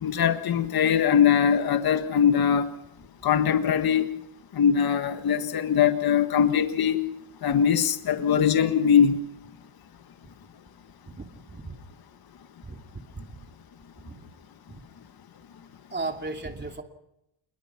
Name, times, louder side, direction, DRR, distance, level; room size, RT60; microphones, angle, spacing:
voice 1, 0.0-2.7 3.2-4.1 4.5-7.0 7.4-9.1, left 8 dB, 45° left, 8 dB, 1.6 m, -21 dB
voice 2, 11.1-11.8 12.6-13.4 14.0-14.3 14.7-14.8 15.9-16.8, right 3 dB, 20° right, 4 dB, 2.8 m, -36 dB
27.0 x 22.0 x 5.9 m, 0.86 s
cardioid pair, 115°, 50 cm